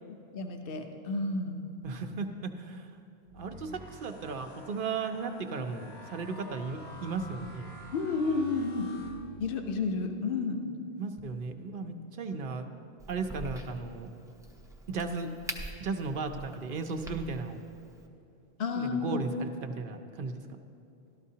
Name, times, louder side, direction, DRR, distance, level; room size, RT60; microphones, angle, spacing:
voice 1, 0.0-1.6 7.9-8.9 9.4-10.6 11.8-11.9 18.6-19.2, left 4 dB, 60° left, 5 dB, 0.9 m, -31 dB
voice 2, 1.8-2.9 3.3-7.7 11.0-12.7 13.1-14.1 14.9-15.3 15.8-17.6 18.7-20.6, right 4 dB, 60° right, 6 dB, 0.8 m, -35 dB
sound 1, 3.3-9.7, equal, 80° left, 2.2 m, -48 dB
Crack, 13.0-18.1, right 1 dB, 5° right, 0.5 m, -45 dB
13.0 x 12.5 x 2.8 m, 2.7 s
omnidirectional pair, 1.1 m